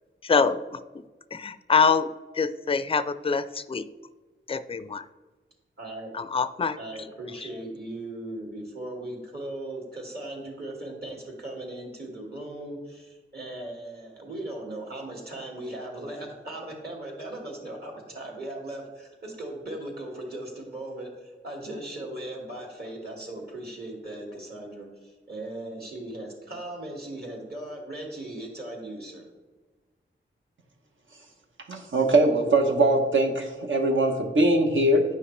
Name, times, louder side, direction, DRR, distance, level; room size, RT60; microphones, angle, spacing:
voice 1, 0.2-1.0 1.3-3.9 4.5-5.0 6.1-6.8, left 5 dB, 25° left, 14 dB, 0.4 m, -25 dB
voice 2, 5.8-6.1 6.8-29.2, right 1 dB, 50° right, -1 dB, 2.3 m, -38 dB
voice 3, 31.7-35.0, right 1 dB, 70° right, 3 dB, 1.1 m, -21 dB
9.3 x 5.7 x 3.3 m, 1.2 s
cardioid pair, 60°, 21 cm